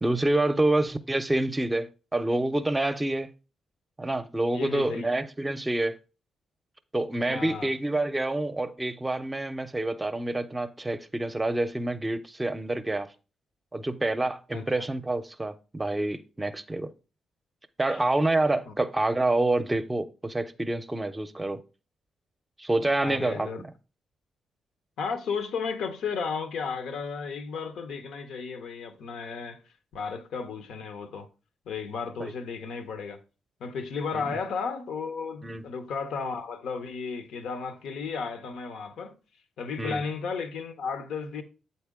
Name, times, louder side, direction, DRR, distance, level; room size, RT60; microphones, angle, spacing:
voice 1, 0.0-3.3 4.0-6.0 6.9-13.1 13.7-16.9 17.8-21.6 22.6-23.7 32.2-32.3 34.1-34.4 35.4-35.6 39.8-40.0, right 2 dB, 20° right, 0.6 m, -27 dB
voice 2, 4.5-5.1 7.3-7.7 14.5-14.9 17.9-18.0 18.7-18.8 23.0-23.6 25.0-29.6 29.9-31.3 31.7-33.2 33.6-39.1 39.6-41.4, left 5 dB, 75° left, 0.7 m, -34 dB
7.9 x 4.1 x 3.6 m
supercardioid pair, 50°, 0 cm